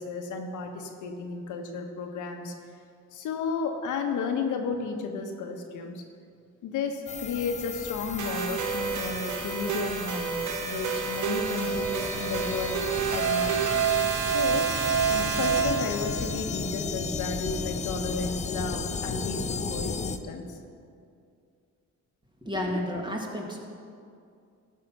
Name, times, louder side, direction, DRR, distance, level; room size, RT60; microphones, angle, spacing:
voice 1, 0.0-2.5 3.1-6.0 6.6-13.6 14.2-14.7 15.1-20.6, left 4 dB, 80° left, 4 dB, 1.2 m, -33 dB
sound 1, 7.1-20.2, left 5 dB, 25° left, 0.5 m, -35 dB
sound 2, 8.2-16.3, right 7 dB, 75° right, 1.0 m, -28 dB
voice 2, 22.4-23.6, left 1 dB, 15° right, 0 dB, 1.9 m, -31 dB
13.0 x 5.7 x 5.9 m, 2.4 s
cardioid pair, 90°, 30 cm